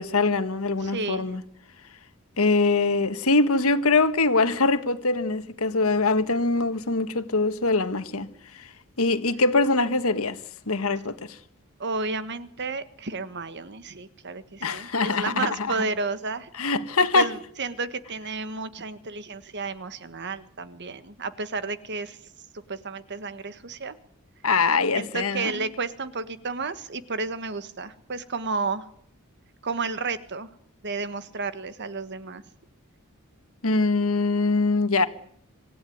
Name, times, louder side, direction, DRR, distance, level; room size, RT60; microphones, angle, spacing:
voice 1, 0.0-1.4 2.4-8.3 9.0-10.4 10.7-11.4 14.6-15.7 16.6-17.3 24.4-25.6 33.6-35.1, left 3 dB, 75° left, 1.7 m, -23 dB
voice 2, 0.8-1.3 11.8-16.5 17.1-22.2 22.7-23.9 24.9-28.9 29.6-30.5 30.8-32.4, right 4 dB, 55° right, 1.5 m, -32 dB
26.0 x 16.0 x 9.4 m
head